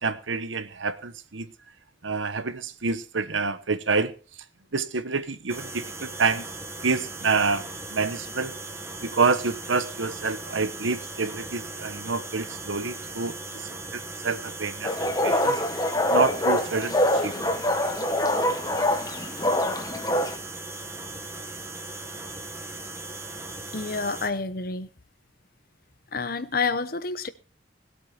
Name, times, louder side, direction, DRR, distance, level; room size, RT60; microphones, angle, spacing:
voice 1, 0.0-1.5 2.0-4.1 4.7-6.5 6.8-8.5 9.0-15.6 16.1-17.5, right 4 dB, 80° right, 1.1 m, -28 dB
sound 1, 5.5-24.3, right 2 dB, 15° right, 1.6 m, -38 dB
sound 2, 14.8-20.3, left 1 dB, 20° left, 1.3 m, -25 dB
voice 2, 23.7-24.9 26.1-27.3, left 4 dB, 50° left, 0.9 m, -28 dB
20.0 x 8.6 x 4.3 m
head